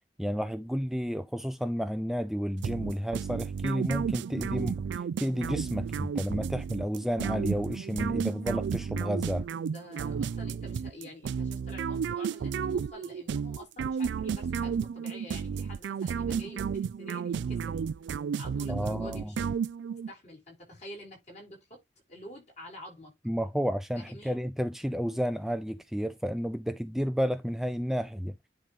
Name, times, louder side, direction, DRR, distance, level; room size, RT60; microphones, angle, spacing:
voice 1, 0.2-9.5 18.7-19.3 23.3-28.3, equal, ahead, 0.3 m, -31 dB
sound 1, 2.6-20.1, right 6 dB, 85° right, 0.3 m, -32 dB
voice 2, 9.6-17.8 18.4-19.5 20.1-21.8 22.1-23.1 23.9-24.4, equal, 40° left, 5.6 m, -48 dB
10.0 x 3.8 x 3.5 m
head